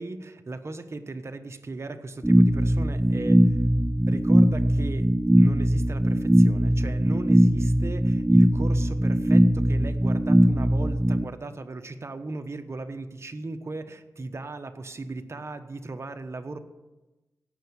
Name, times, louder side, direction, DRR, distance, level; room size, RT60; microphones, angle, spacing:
voice 1, 0.0-3.6 4.1-16.6, right 3 dB, 45° right, 7 dB, 1.2 m, -37 dB
sound 1, 2.2-11.2, equal, 10° right, 0.5 m, -20 dB
17.0 x 5.8 x 9.8 m, 1.1 s
cardioid pair, 65°, 6 cm